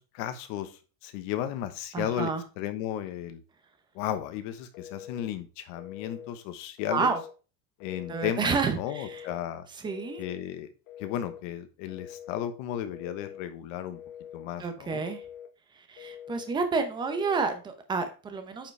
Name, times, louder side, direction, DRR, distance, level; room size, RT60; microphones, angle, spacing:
voice 1, 0.0-3.4 3.9-7.1 7.8-9.7 10.2-10.7 11.0-14.0 14.3-15.0, left 11 dB, 45° left, 10 dB, 1.1 m, -34 dB
voice 2, 1.9-2.4 6.9-7.2 8.1-9.3 9.8-10.2 14.6-15.2 15.7-18.7, right 5 dB, 10° right, 8 dB, 0.7 m, -30 dB
Telephone, 4.7-5.3 5.8-6.3 6.8-7.4 7.8-8.4 8.8-9.4 9.8-10.4 10.9-11.4 11.9-12.5 12.9-13.5 13.9-14.5 14.9-15.5 16.0-16.5 17.0-17.6, left 9 dB, 80° left, 1.4 m, -45 dB
8.8 x 5.1 x 3.3 m, 0.34 s
cardioid pair, 175°, 41 cm